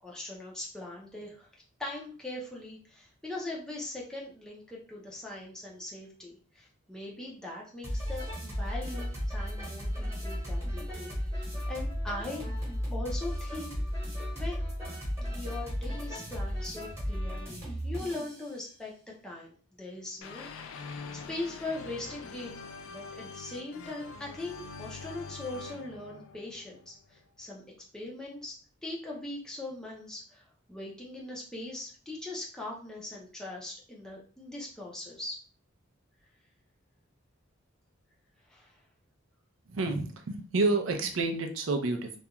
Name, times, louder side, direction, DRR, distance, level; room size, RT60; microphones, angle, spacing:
voice 1, 0.0-1.5 1.8-12.4 12.9-13.8 14.3-14.6 15.3-18.9 19.2-22.5 22.9-27.6 27.9-35.4 38.5-38.7, left 2 dB, 5° left, -3 dB, 0.4 m, -41 dB
sound 1, 7.8-18.4, equal, 15° right, 1.0 m, -34 dB
sound 2, 20.2-27.2, left 4 dB, 70° left, 0.3 m, -44 dB
voice 2, 39.7-42.2, right 3 dB, 70° right, 5 dB, 0.5 m, -29 dB
2.4 x 2.2 x 2.8 m, 0.41 s
head